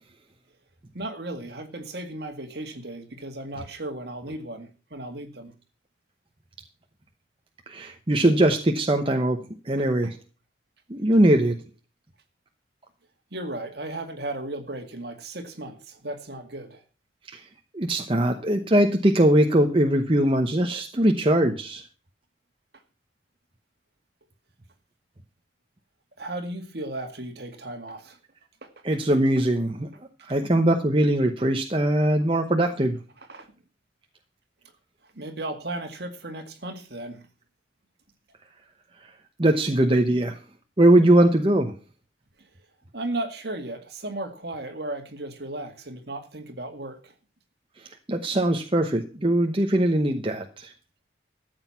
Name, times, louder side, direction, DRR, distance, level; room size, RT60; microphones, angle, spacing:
voice 1, 0.9-5.5 13.3-16.8 26.2-28.2 28.6-28.7 30.2-30.4 33.3-33.5 35.0-37.2 42.4-42.5 42.9-47.1, right 2 dB, 55° right, 6 dB, 2.1 m, -35 dB
voice 2, 7.7-9.4 9.6-10.2 10.9-11.6 17.3-17.4 17.7-21.8 28.8-29.9 30.2-33.0 39.0-39.1 39.4-40.4 40.8-41.7 48.1-50.7, right 1 dB, 30° right, 4 dB, 1.0 m, -21 dB
13.5 x 8.1 x 5.8 m, 0.33 s
head